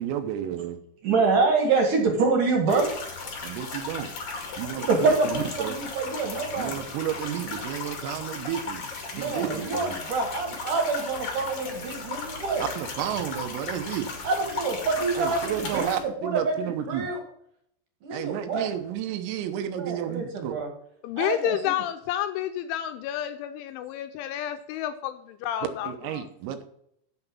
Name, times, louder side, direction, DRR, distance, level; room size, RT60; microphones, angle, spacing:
voice 1, 0.0-0.8 3.4-4.1 4.6-5.8 6.6-8.9 9.2-10.0 12.6-14.1 15.2-17.1 18.1-20.6 25.8-26.6, right 10 dB, 85° right, 8 dB, 3.7 m, -32 dB
voice 2, 1.0-2.9 4.9-6.8 9.1-12.6 14.2-17.2 18.0-18.7 19.8-20.7 21.2-21.6, right 4 dB, 55° right, 3 dB, 2.7 m, -26 dB
sound 1, 2.7-16.0, left 4 dB, 45° left, 1.9 m, -36 dB
voice 3, 21.0-25.9 26.2-26.3, left 11 dB, 80° left, 7 dB, 2.8 m, -30 dB
8.5 x 7.9 x 5.5 m, 0.71 s
omnidirectional pair, 5.9 m